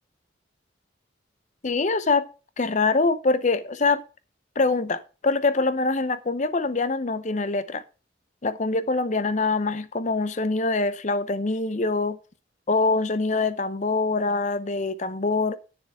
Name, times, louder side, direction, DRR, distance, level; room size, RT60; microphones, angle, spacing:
voice 1, 1.6-2.3 2.6-4.0 4.6-7.8 8.4-12.2 12.7-15.6, left 3 dB, 40° left, 0.6 m, -24 dB
9.8 x 6.7 x 4.9 m
head